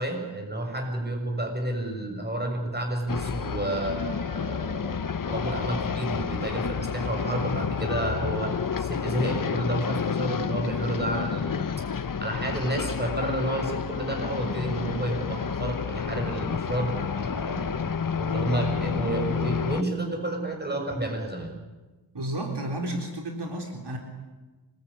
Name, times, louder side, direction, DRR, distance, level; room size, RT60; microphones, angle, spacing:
voice 1, 0.0-11.6 12.2-21.5, right 1 dB, 25° right, 3 dB, 6.4 m, -30 dB
sound 1, 3.1-19.8, left 6 dB, 50° left, 0.9 m, -30 dB
voice 2, 22.1-24.0, right 1 dB, 65° right, 2 dB, 4.0 m, -32 dB
25.5 x 21.5 x 9.8 m, 1.2 s
wide cardioid pair, 110°, 43 cm